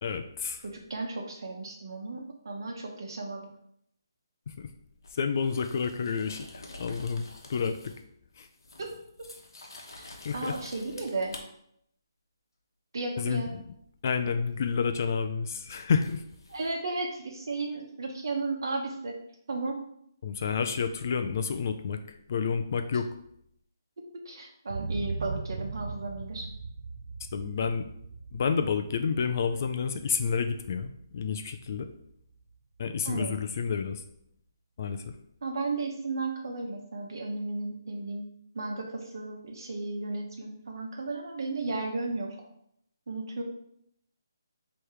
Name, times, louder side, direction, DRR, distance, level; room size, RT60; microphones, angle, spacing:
voice 1, 0.0-0.6 4.5-4.7 5.1-7.9 8.4-8.5 10.2-10.6 13.2-13.6 14.0-16.2 20.2-23.1 27.3-27.9 28.3-31.9 32.8-34.0 34.8-35.1, left 6 dB, 40° left, 7 dB, 0.4 m, -30 dB
voice 2, 0.6-3.4 8.8-8.9 10.0-10.1 10.3-11.3 12.9-13.5 16.5-19.2 19.5-19.8 24.2-26.5 33.0-33.4 35.4-38.3 38.5-42.4 43.1-43.4, right 3 dB, 65° right, 1 dB, 1.1 m, -34 dB
sound 1, 5.0-8.1 8.4-11.4 14.6-14.7 16.0-16.7, left 2 dB, 75° left, 0.9 m, -48 dB
sound 2, 24.7-32.6 33.0-33.1, right 4 dB, 80° right, 0.4 m, -40 dB
3.3 x 3.1 x 4.7 m, 0.71 s
hypercardioid pair, 165°, 2 cm